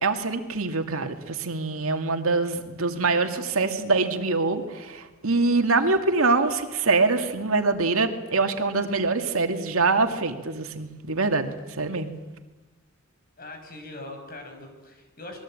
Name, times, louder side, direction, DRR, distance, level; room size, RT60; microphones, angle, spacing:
voice 1, 0.0-12.1, right 3 dB, 90° right, 6 dB, 2.3 m, -24 dB
voice 2, 13.4-15.4, left 2 dB, 45° left, 5 dB, 5.9 m, -41 dB
26.5 x 21.0 x 8.8 m, 1.1 s
head